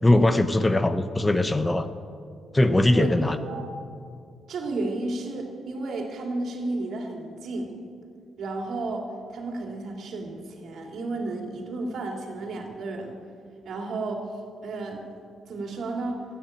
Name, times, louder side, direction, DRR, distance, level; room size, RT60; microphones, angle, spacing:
voice 1, 0.0-1.9 2.5-3.4, left 1 dB, 20° left, 10 dB, 0.8 m, -20 dB
voice 2, 2.9-3.7 4.5-7.7 8.4-13.1 13.6-14.3 14.6-15.0 15.5-16.2, right 2 dB, 65° right, 1 dB, 2.7 m, -32 dB
14.0 x 9.0 x 8.9 m, 2.3 s
cardioid pair, 70°, 0 cm